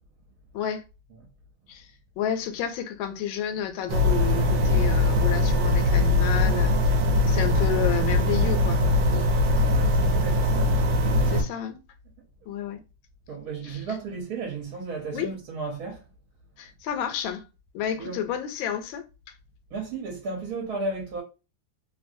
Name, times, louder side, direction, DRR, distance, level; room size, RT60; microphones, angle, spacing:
voice 1, 0.5-0.8 1.7-1.9 2.2-6.8 7.3-8.8 9.1-9.3 11.3-11.8 12.5-12.8 13.6-13.8 15.1-15.3 16.6-17.4 17.7-19.0, left 9 dB, 85° left, 1.3 m, -31 dB
sound 1, 3.9-11.4, left 1 dB, 85° right, 1.4 m, -21 dB
voice 2, 9.7-10.7 12.4-12.5 13.3-16.0 18.0-18.3 19.7-21.2, right 4 dB, 60° right, 1.2 m, -34 dB
3.0 x 2.5 x 2.5 m
omnidirectional pair, 2.1 m